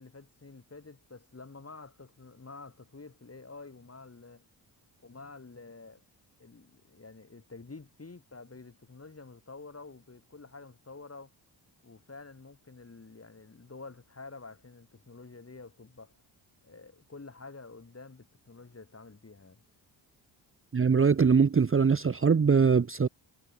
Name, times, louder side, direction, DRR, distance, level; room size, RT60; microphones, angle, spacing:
voice 1, 0.0-4.5 5.0-6.0 6.4-11.3 11.8-16.1 16.6-19.6, left 3 dB, 30° left, 6.9 m, -49 dB
voice 2, 20.7-23.1, right 5 dB, 25° right, 1.0 m, -22 dB
supercardioid pair, 50°, 49 cm